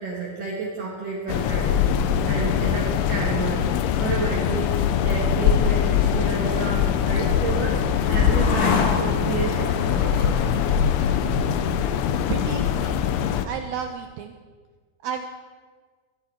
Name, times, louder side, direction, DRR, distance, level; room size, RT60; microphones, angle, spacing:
voice 1, 0.0-1.8 2.2-3.7 4.0-10.4, right 4 dB, 55° right, -3 dB, 2.9 m, -30 dB
sound 1, 1.3-13.5, left 8 dB, 85° left, 3.2 m, -22 dB
sound 2, 5.3-12.6, left 4 dB, 60° left, 2.8 m, -31 dB
voice 2, 12.2-13.0 13.4-14.4 15.0-15.3, right 8 dB, 90° right, 5 dB, 2.1 m, -32 dB
23.0 x 13.0 x 4.4 m, 1.5 s
omnidirectional pair, 5.3 m